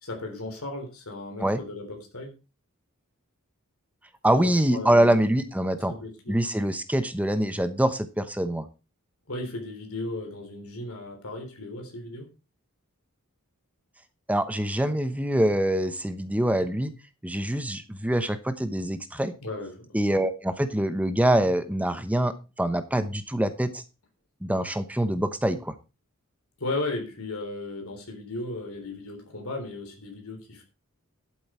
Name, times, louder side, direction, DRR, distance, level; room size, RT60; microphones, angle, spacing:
voice 1, 0.0-2.3 4.2-5.2 5.9-6.4 9.3-12.3 19.4-20.0 26.6-30.6, left 2 dB, 70° left, 3 dB, 3.7 m, -35 dB
voice 2, 4.2-5.9 6.3-8.6 14.3-16.9 17.2-19.3 19.9-23.8 24.4-25.7, right 1 dB, 5° right, 10 dB, 0.9 m, -25 dB
11.5 x 8.0 x 4.5 m, 0.30 s
head